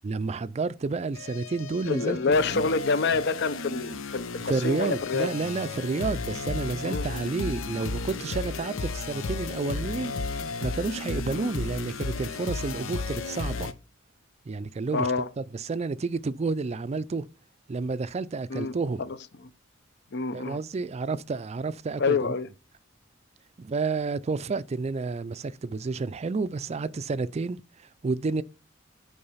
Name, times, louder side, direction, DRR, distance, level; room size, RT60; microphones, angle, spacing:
voice 1, 0.0-2.2 2.5-2.6 4.5-10.1 10.6-13.7 14.5-15.1 15.4-17.3 17.7-19.0 20.3-22.3 23.6-28.4, right 4 dB, 35° right, 0.4 m, -30 dB
sound 1, 1.1-13.7, left 3 dB, 90° left, 0.8 m, -34 dB
voice 2, 1.9-5.3 6.8-7.3 11.3-11.5 14.9-15.3 18.5-18.7 19.0-19.2 19.4-19.5 20.1-20.6 22.0-22.5, left 4 dB, 60° left, 0.7 m, -27 dB
8.6 x 4.7 x 5.5 m
head